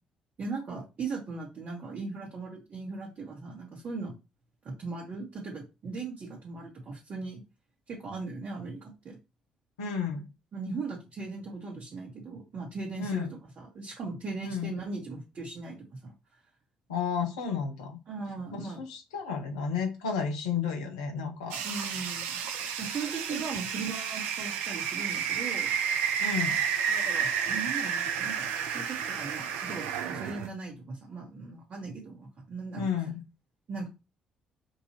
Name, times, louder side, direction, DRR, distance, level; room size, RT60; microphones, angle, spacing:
voice 1, 0.4-4.2 4.6-7.4 7.9-9.2 10.5-13.3 13.6-16.1 18.1-18.8 21.6-22.4 22.8-25.7 26.9-32.9 33.7-33.9, right 4 dB, 45° right, -4 dB, 1.5 m, -38 dB
voice 2, 9.8-10.2 13.0-13.3 14.4-14.7 16.9-18.0 18.5-21.6 23.3-23.4 26.2-26.6 32.8-33.1, left 6 dB, 75° left, 4 dB, 0.8 m, -32 dB
sound 1, 21.5-30.5, right 7 dB, 70° right, 0.5 m, -31 dB
5.3 x 2.7 x 3.1 m, 0.27 s
figure-of-eight pair, 45°, 3 cm